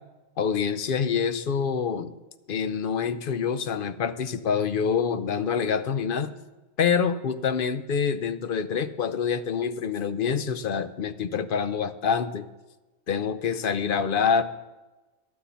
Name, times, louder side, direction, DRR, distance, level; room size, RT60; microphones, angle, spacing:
voice 1, 0.4-2.1 2.5-6.3 6.8-12.5 13.1-14.4, left 6 dB, 50° left, 12 dB, 0.7 m, -26 dB
12.0 x 10.0 x 7.0 m, 1.1 s
omnidirectional pair, 1.4 m